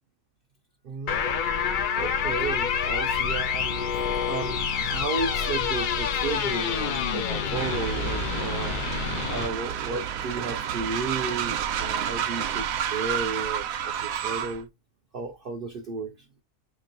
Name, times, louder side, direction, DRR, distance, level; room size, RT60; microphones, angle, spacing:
voice 1, 0.8-8.8 9.3-14.7 15.1-16.3, right 4 dB, 60° right, 0.6 m, -34 dB
sound 1, 1.1-9.5, left 7 dB, 75° left, 0.4 m, -27 dB
Train, 7.6-14.6, right 9 dB, 90° right, 1.0 m, -30 dB
3.1 x 3.0 x 3.8 m
omnidirectional pair, 1.4 m